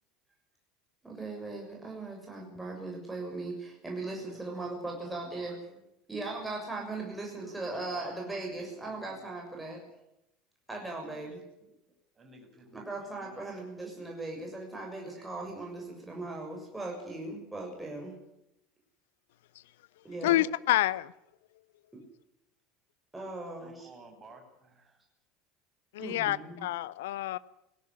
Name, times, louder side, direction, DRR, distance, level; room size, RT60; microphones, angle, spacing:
voice 1, 1.0-5.5 6.1-9.8 10.7-11.4 12.7-18.1 20.0-20.4 21.9-22.0 23.1-23.9 26.0-26.7, right 2 dB, 10° right, 0 dB, 7.0 m, -39 dB
voice 2, 4.0-4.7 5.0-5.8 7.3-8.2 8.4-9.5 11.2-11.7 12.2-13.6 23.6-25.0, right 2 dB, 25° right, 4 dB, 7.3 m, -55 dB
voice 3, 20.2-21.1 25.9-27.4, left 15 dB, 65° left, 20 dB, 0.8 m, -28 dB
20.0 x 16.0 x 9.8 m, 0.85 s
figure-of-eight pair, 70°, 0 cm